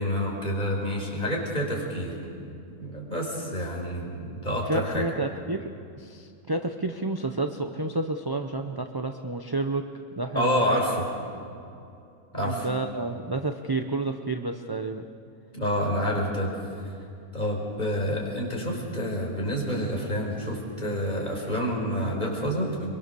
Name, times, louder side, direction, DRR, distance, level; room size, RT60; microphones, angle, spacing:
voice 1, 0.0-2.2 2.8-5.1 10.3-11.1 12.3-12.7 15.5-16.5 17.3-22.7, equal, 30° left, -1 dB, 5.0 m, -28 dB
voice 2, 4.7-5.7 6.0-9.9 10.2-10.8 12.4-15.1, right 2 dB, 20° right, 5 dB, 0.6 m, -30 dB
24.5 x 23.5 x 7.0 m, 2.5 s
omnidirectional pair, 1.6 m